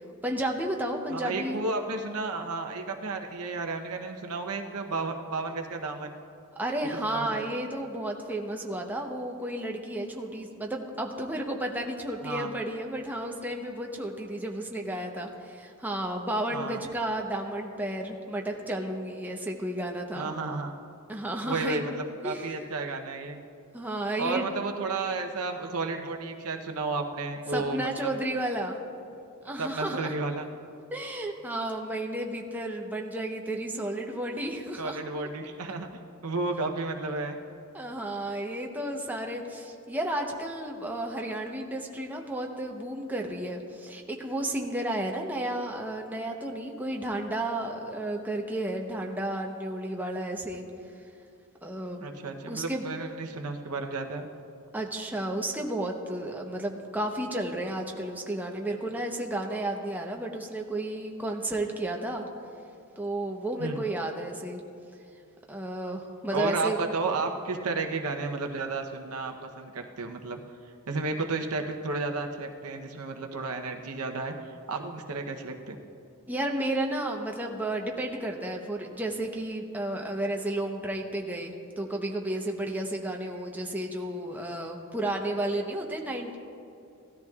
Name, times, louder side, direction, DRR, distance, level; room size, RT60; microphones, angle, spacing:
voice 1, 0.2-1.6 6.6-20.3 21.1-21.9 22.2-22.5 23.7-24.5 27.5-28.8 29.4-30.1 30.9-35.0 37.7-50.6 51.6-52.1 52.5-52.8 54.7-62.3 63.0-64.6 65.5-66.8 76.3-86.4, right 1 dB, 10° right, 1 dB, 0.8 m, -32 dB
voice 2, 1.1-6.2 7.0-7.4 12.2-12.5 16.5-16.8 20.1-20.7 21.4-23.4 24.2-28.1 29.6-30.5 34.8-37.4 52.0-54.3 63.6-63.8 66.3-70.4 70.9-74.3 74.7-75.8, right 3 dB, 80° right, 4 dB, 0.8 m, -32 dB
17.5 x 13.0 x 2.4 m, 2.6 s
head